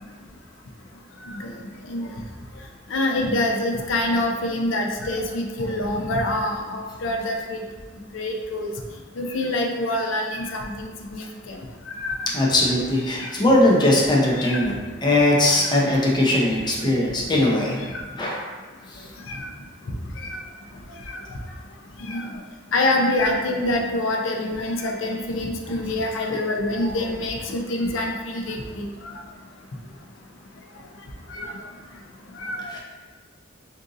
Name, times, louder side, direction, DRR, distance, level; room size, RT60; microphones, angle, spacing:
voice 1, 1.2-1.6 1.9-2.1 2.9-7.6 8.1-8.7 9.2-11.6 11.9-12.2 13.1-13.3 14.4-14.6 15.4-15.7 17.9-18.0 19.3-19.5 20.2-20.4 22.0-22.3 22.7-29.1 31.3-31.5 32.4-32.7, left 1 dB, 85° left, 2 dB, 0.5 m, -26 dB
voice 2, 12.3-17.8 18.1-18.4 18.9-19.0 25.7-25.8 26.3-26.4 32.7-32.8, left 1 dB, 25° left, -3 dB, 0.6 m, -20 dB
2.6 x 2.5 x 3.7 m, 1.4 s
head